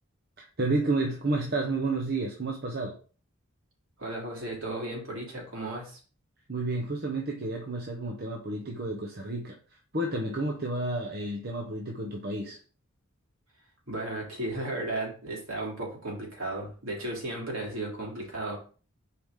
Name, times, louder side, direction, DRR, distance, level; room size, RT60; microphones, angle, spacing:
voice 1, 0.4-3.0 6.5-12.6, right 2 dB, 45° right, 0 dB, 1.0 m, -31 dB
voice 2, 4.0-6.0 13.9-18.6, right 2 dB, 65° right, -2 dB, 3.2 m, -35 dB
6.9 x 4.8 x 3.8 m, 0.38 s
head